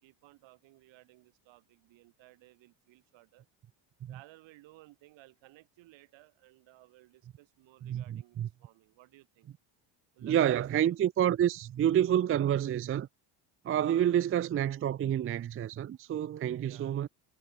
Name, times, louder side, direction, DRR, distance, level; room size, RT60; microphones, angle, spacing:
voice 1, 0.0-3.5 4.1-9.5 10.1-11.0 16.6-17.1, right 18 dB, 75° right, 5.0 m, -58 dB
voice 2, 7.8-8.5 10.2-13.1 13.6-17.1, right 10 dB, 30° right, 0.5 m, -28 dB
supercardioid pair, 90°, 46 cm